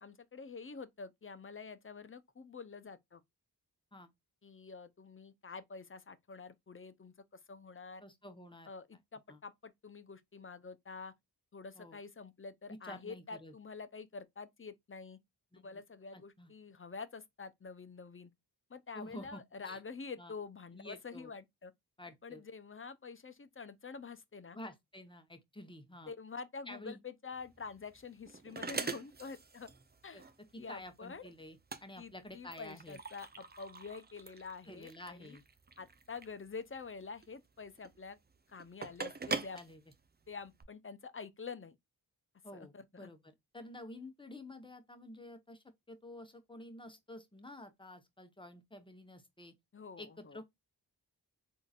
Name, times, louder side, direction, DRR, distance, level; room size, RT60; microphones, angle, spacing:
voice 1, 0.0-3.2 4.4-8.0 8.7-11.1 11.5-15.2 15.6-18.3 18.7-21.7 22.2-24.6 26.1-29.7 30.0-30.2 30.6-31.3 32.0-35.4 35.8-38.2 38.5-39.6 40.3-41.8 42.5-43.1 49.7-50.4, left 4 dB, 30° left, 0.6 m, -47 dB
voice 2, 8.0-8.7 9.3-9.4 11.8-12.0 12.7-13.5 15.5-15.8 16.1-16.5 18.9-19.8 20.2-20.3 20.7-21.3 22.0-22.4 24.5-26.1 26.7-27.0 30.1-30.2 30.5-33.0 34.7-35.4 39.5-39.8 42.4-43.2 43.5-49.5 50.0-50.5, left 1 dB, 10° left, 1.0 m, -50 dB
sound 1, 27.3-40.6, right 4 dB, 25° right, 0.6 m, -44 dB
3.7 x 2.7 x 2.4 m
cardioid pair, 40°, 40 cm